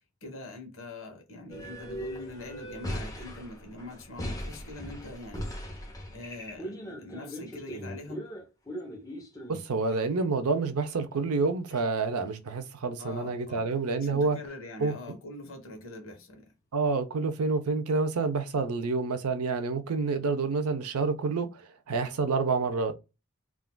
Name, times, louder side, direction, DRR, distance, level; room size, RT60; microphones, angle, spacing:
voice 1, 0.2-5.5 6.1-8.3 13.0-13.6 14.0-16.4, left 2 dB, 65° left, 1.3 m, -43 dB
sound 1, 1.5-10.0 10.9-11.0 11.3-11.4 11.7-11.8 12.3-12.4 13.9-14.0, equal, 15° left, 0.7 m, -39 dB
voice 2, 9.5-14.4 14.8-14.9 16.7-23.0, right 4 dB, 85° right, 0.5 m, -28 dB
3.6 x 2.3 x 2.2 m
head